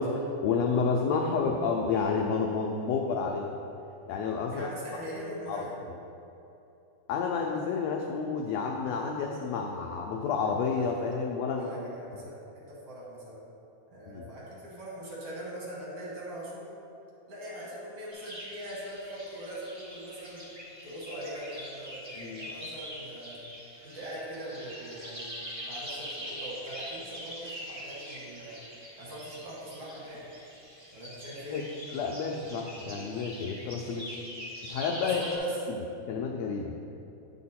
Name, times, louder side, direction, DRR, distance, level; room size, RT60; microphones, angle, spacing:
voice 1, 0.0-3.5 4.1-4.7 5.5-5.7 7.1-11.7 14.1-14.2 22.2-22.5 31.5-31.6 31.9-34.2 34.6-35.2 36.1-36.7, left 5 dB, 85° left, 1 dB, 1.5 m, -30 dB
voice 2, 4.5-5.7 11.5-13.4 13.9-16.7 17.3-20.4 20.8-23.4 23.8-28.6 29.0-30.3 30.9-31.6 35.0-35.6, right 1 dB, 55° right, -6 dB, 2.3 m, -41 dB
sound 1, 18.1-35.4, equal, 30° right, 0.6 m, -43 dB
9.3 x 4.6 x 4.2 m, 2.9 s
omnidirectional pair, 3.5 m